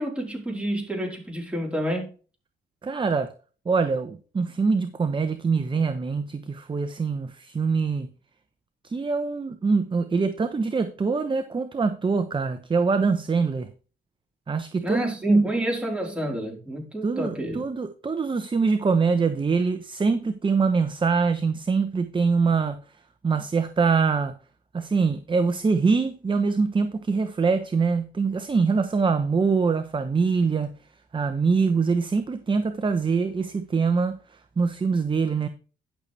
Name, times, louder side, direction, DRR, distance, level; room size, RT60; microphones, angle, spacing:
voice 1, 0.0-2.1 14.8-17.7, right 1 dB, 5° right, 3.9 m, -28 dB
voice 2, 2.8-3.3 3.7-8.1 8.8-13.7 14.5-15.4 17.0-22.8 23.2-24.3 24.7-30.7 31.1-34.2 34.6-35.5, right 4 dB, 25° right, 0.8 m, -24 dB
11.5 x 6.7 x 3.3 m
cardioid pair, 90°, 20 cm